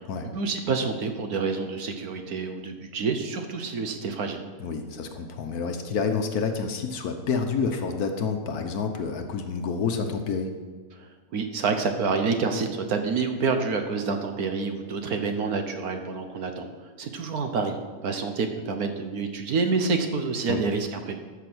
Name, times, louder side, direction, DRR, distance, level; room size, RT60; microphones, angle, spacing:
voice 1, 0.3-4.4 11.0-16.7 17.0-21.2, right 4 dB, 60° right, 6 dB, 1.3 m, -28 dB
voice 2, 4.6-10.5 20.5-20.6, left 5 dB, 60° left, 6 dB, 1.3 m, -28 dB
13.0 x 6.0 x 6.2 m, 1.4 s
omnidirectional pair, 1.9 m